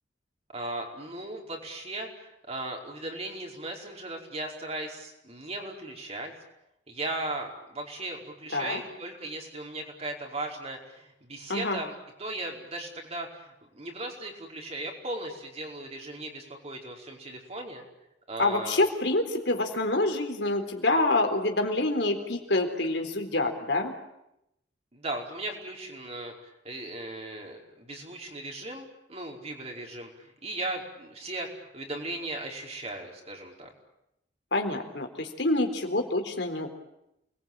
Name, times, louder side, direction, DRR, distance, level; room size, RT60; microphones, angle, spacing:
voice 1, 0.5-6.3 6.9-17.8 18.3-18.8 24.9-33.7, right 2 dB, 35° right, 0 dB, 5.0 m, -37 dB
voice 2, 18.4-23.9 34.5-36.8, left 2 dB, 70° left, 4 dB, 4.0 m, -27 dB
29.0 x 21.0 x 9.0 m, 0.84 s
head